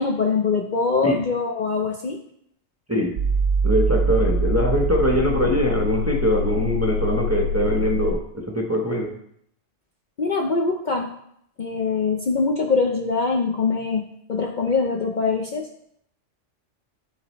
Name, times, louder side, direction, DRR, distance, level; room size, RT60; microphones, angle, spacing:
voice 1, 0.0-2.2 10.2-11.1 11.6-15.7, left 4 dB, 50° left, 1 dB, 0.6 m, -23 dB
sound 1, 3.2-8.1, equal, 80° right, 1.0 m, -24 dB
voice 2, 3.6-9.1, equal, 15° right, 0 dB, 0.7 m, -22 dB
11.0 x 4.4 x 3.0 m, 0.71 s
omnidirectional pair, 1.3 m